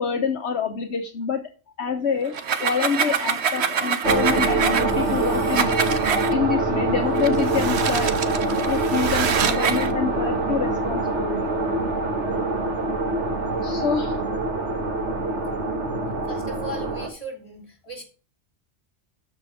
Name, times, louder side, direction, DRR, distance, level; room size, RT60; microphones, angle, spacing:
voice 1, 0.0-1.4 1.8-2.3 2.6-5.9 6.3-8.2 8.5-11.4 12.8-12.9 13.6-14.2 15.5-16.4, left 6 dB, 70° left, 4 dB, 1.2 m, -27 dB
sound 1, 2.3-6.3 7.1-9.9, right 7 dB, 70° right, 1.1 m, -26 dB
sound 2, 4.0-17.1, right 2 dB, 90° right, 2.0 m, -25 dB
voice 2, 16.3-17.6 17.9-18.0, equal, 30° left, 2 dB, 3.5 m, -36 dB
12.5 x 5.1 x 4.8 m, 0.36 s
omnidirectional pair, 1.2 m